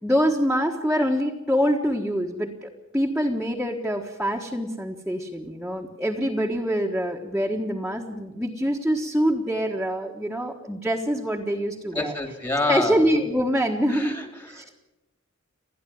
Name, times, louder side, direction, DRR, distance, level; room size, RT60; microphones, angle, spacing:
voice 1, 0.0-12.1 12.7-14.2 14.5-14.7, equal, 5° right, -3 dB, 1.4 m, -25 dB
voice 2, 11.9-13.0 13.9-14.7, left 2 dB, 20° left, 6 dB, 2.1 m, -28 dB
29.5 x 10.5 x 9.4 m, 1.0 s
head